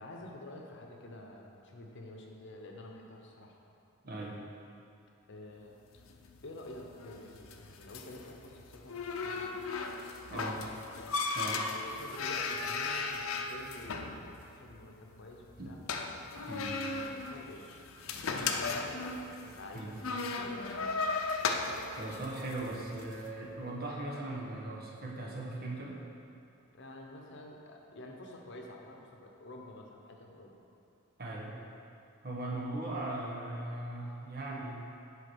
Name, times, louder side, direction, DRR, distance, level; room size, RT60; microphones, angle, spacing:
voice 1, 0.0-3.6 5.3-6.0 6.4-9.7 10.3-10.5 11.7-15.8 16.9-17.7 18.1-19.0 19.4-21.0 26.7-30.5, left 1 dB, 55° left, 1 dB, 1.0 m, -49 dB
voice 2, 4.0-4.4 10.3-10.6 11.3-11.7 15.6-15.7 16.5-16.8 19.7-20.0 22.0-26.0 31.2-31.5 32.2-34.8, right 2 dB, 45° right, -3 dB, 1.3 m, -39 dB
sound 1, 5.9-23.2, left 4 dB, 70° left, 0.6 m, -37 dB
8.2 x 4.9 x 6.3 m, 2.6 s
head